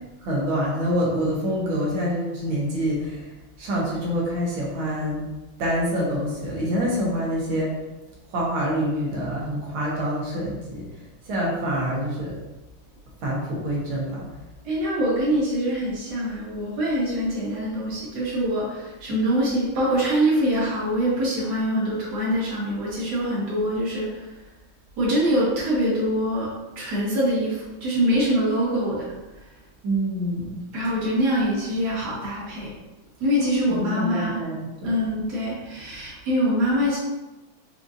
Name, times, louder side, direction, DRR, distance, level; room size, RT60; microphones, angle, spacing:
voice 1, 0.2-3.3 3.6-5.3 5.6-7.8 8.3-10.9 11.3-12.4 13.2-14.2 29.8-30.6 33.7-34.9, equal, 75° right, -4 dB, 1.8 m, -26 dB
voice 2, 14.6-24.3 25.0-29.1 30.7-32.7 33.2-34.4 34.8-37.0, equal, 55° right, -8 dB, 1.8 m, -24 dB
5.3 x 2.6 x 2.5 m, 1.1 s
omnidirectional pair, 2.3 m